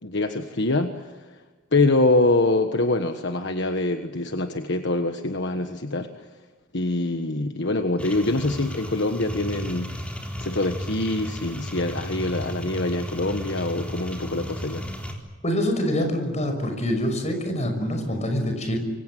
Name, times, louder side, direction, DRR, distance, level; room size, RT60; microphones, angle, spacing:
voice 1, 0.0-1.2 1.7-6.3 6.7-9.9 10.4-14.9, left 2 dB, 60° left, 6 dB, 1.4 m, -24 dB
sound 1, 8.0-15.1, equal, 5° left, 3.8 m, -34 dB
voice 2, 15.4-18.8, equal, 35° left, 6 dB, 5.9 m, -25 dB
26.5 x 24.0 x 7.7 m, 1.4 s
head